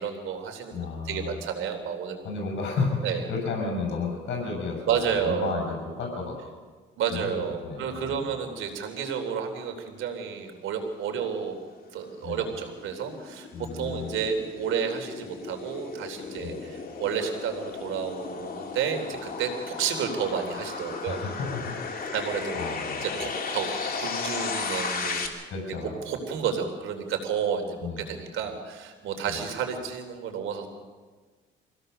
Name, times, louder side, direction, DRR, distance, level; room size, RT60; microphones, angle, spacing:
voice 1, 0.0-2.2 3.0-3.2 4.9-5.6 7.0-11.5 11.9-21.2 22.1-22.6 23.0-25.5 26.1-30.7, right 7 dB, 85° right, 5 dB, 3.5 m, -31 dB
voice 2, 0.7-1.3 2.2-6.4 7.1-8.3 12.2-12.5 13.5-14.2 16.4-16.6 21.1-21.8 22.6-23.2 25.5-26.0 27.8-28.1 29.3-29.4, left 4 dB, 65° left, 0 dB, 6.9 m, -32 dB
sound 1, 12.1-25.3, left 5 dB, 45° left, 3.0 m, -35 dB
24.0 x 16.5 x 6.7 m, 1.4 s
cardioid pair, 90°, 20 cm